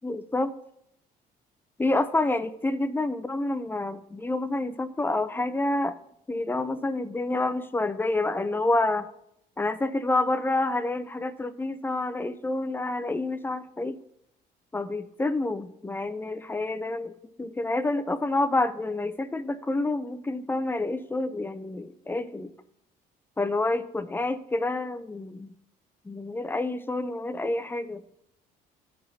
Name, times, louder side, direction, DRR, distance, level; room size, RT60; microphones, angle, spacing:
voice 1, 0.0-0.5 1.8-6.0 6.3-9.1 9.6-14.0 14.7-17.1 17.4-22.5 23.4-25.5 26.1-28.0, left 2 dB, 10° left, 12 dB, 0.5 m, -28 dB
14.0 x 4.8 x 2.7 m, 0.77 s
cardioid pair, 110°, 17 cm